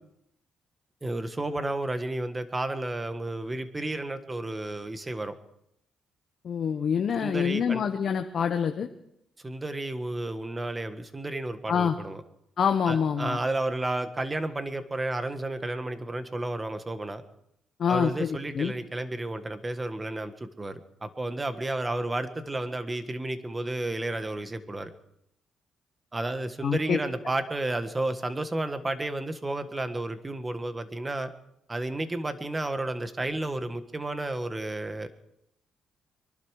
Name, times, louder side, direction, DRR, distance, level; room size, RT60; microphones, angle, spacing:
voice 1, 1.0-5.4 7.2-7.8 9.4-12.2 12.9-17.2 17.9-24.9 26.1-31.3 31.7-35.1, right 2 dB, 20° right, 10 dB, 1.6 m, -32 dB
voice 2, 6.4-8.9 11.7-12.0 12.6-13.4 17.8-18.3 18.5-18.7 26.6-27.0, left 7 dB, 55° left, 5 dB, 1.1 m, -26 dB
24.0 x 12.0 x 4.9 m, 0.78 s
cardioid pair, 90°, 0 cm